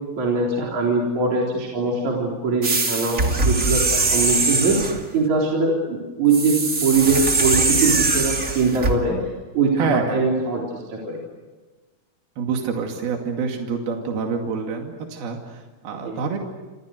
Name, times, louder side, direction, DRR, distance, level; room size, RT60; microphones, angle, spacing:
voice 1, 0.2-3.2 3.4-4.8 5.1-9.2 9.5-10.6 10.9-11.2 16.1-16.2, right 4 dB, 50° right, -2 dB, 5.1 m, -22 dB
sound 1, 2.6-5.0 6.3-9.0, right 3 dB, 25° right, 2.4 m, -21 dB
voice 2, 9.8-10.2 12.4-16.4, right 5 dB, 80° right, 2 dB, 4.3 m, -26 dB
29.5 x 27.0 x 6.6 m, 1.3 s
omnidirectional pair, 4.3 m